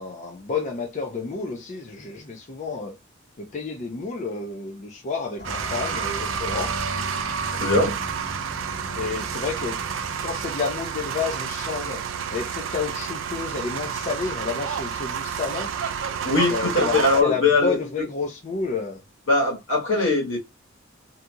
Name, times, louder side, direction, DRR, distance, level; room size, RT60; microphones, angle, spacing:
voice 1, 0.0-3.0 3.4-6.7 9.0-9.8 10.2-15.7 16.5-19.0, left 4 dB, 35° left, 0.5 m, -30 dB
sound 1, 5.4-10.4, left 2 dB, 55° left, 1.2 m, -39 dB
sound 2, 5.4-17.2, right 7 dB, 75° right, 0.4 m, -30 dB
voice 2, 7.5-8.0 16.2-17.8 19.3-20.4, left 3 dB, 75° left, 1.3 m, -21 dB
2.7 x 2.7 x 2.3 m
head